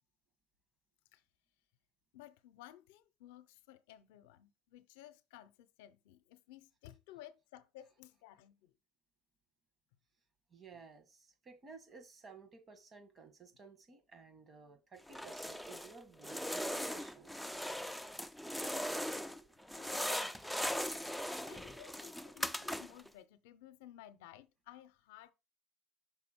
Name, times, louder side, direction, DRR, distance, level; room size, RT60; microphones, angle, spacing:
voice 1, 2.1-8.7 19.7-20.7 21.5-25.3, left 13 dB, 85° left, 0.6 m, -56 dB
voice 2, 10.5-17.3 18.9-19.7, right 4 dB, 35° right, 1.5 m, -56 dB
sound 1, 15.1-15.9 16.2-19.4 19.7-23.1, equal, ahead, 0.4 m, -39 dB
5.8 x 4.3 x 4.4 m
supercardioid pair, 105°, 0 cm